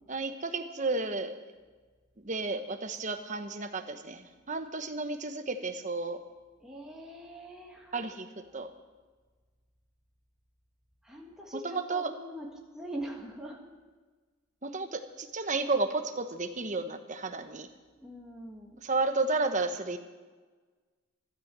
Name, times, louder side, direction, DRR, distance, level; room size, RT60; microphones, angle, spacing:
voice 1, 0.1-1.3 2.2-6.2 7.9-8.3 8.5-8.7 11.6-12.1 14.6-17.7 18.8-20.0, right 3 dB, 35° right, 6 dB, 1.1 m, -32 dB
voice 2, 6.6-8.4 11.0-13.6 18.0-18.8, right 1 dB, 5° right, -1 dB, 1.6 m, -43 dB
13.0 x 12.5 x 7.5 m, 1.4 s
head